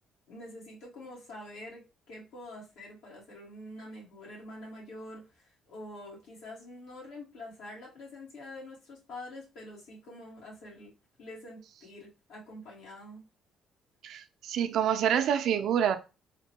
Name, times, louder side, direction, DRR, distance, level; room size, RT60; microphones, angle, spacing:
voice 1, 0.3-10.9 11.2-13.2, left 1 dB, 80° left, 1.6 m, -46 dB
voice 2, 14.0-16.0, right 9 dB, 70° right, 0.4 m, -27 dB
3.6 x 2.1 x 2.8 m
cardioid pair, 80°, 0 cm